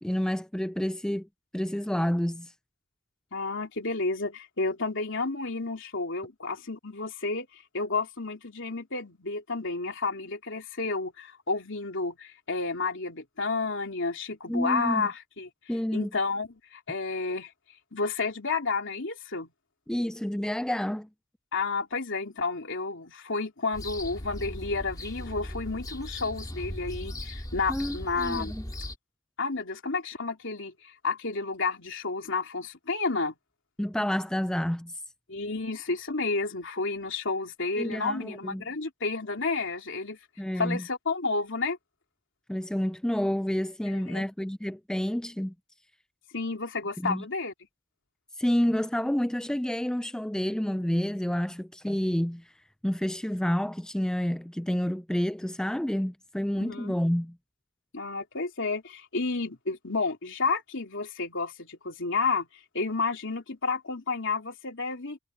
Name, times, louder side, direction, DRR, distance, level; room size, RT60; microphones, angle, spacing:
voice 1, 0.0-1.3 1.5-2.5 14.5-15.1 15.7-16.1 19.9-21.1 27.7-28.6 33.8-34.9 37.8-38.6 40.4-40.8 42.5-45.5 47.0-47.2 48.4-52.4 52.8-57.3, equal, 5° left, 0.3 m, -29 dB
voice 2, 3.3-15.5 15.9-17.5 17.9-19.5 21.5-28.5 29.4-33.4 35.3-40.2 40.6-41.8 43.9-44.3 46.3-47.5 56.6-56.9 57.9-62.5 62.7-65.2, left 3 dB, 65° left, 3.4 m, -31 dB
sound 1, 23.7-29.0, left 1 dB, 20° left, 2.0 m, -38 dB
head